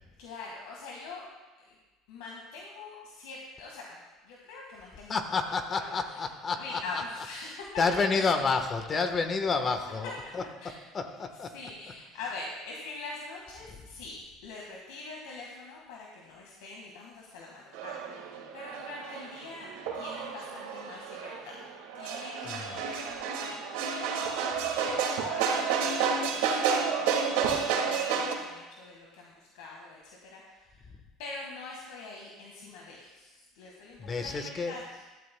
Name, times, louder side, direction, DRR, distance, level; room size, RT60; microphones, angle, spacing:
voice 1, 0.2-1.3 1.6-1.7 2.1-5.2 5.7-6.2 6.5-7.7 8.1-8.3 10.6-10.7 11.5-19.7 19.9-21.6 21.9-24.4 24.8-30.9 31.2-35.0, left 3 dB, 80° left, -2 dB, 1.8 m, -44 dB
voice 2, 5.1-7.0 7.4-11.5 22.4-22.9 34.0-34.7, left 4 dB, 35° left, 7 dB, 1.2 m, -30 dB
sound 1, 17.7-28.3, right 6 dB, 85° right, 1.7 m, -30 dB
14.0 x 13.0 x 2.3 m, 1.2 s
supercardioid pair, 90°, 0 cm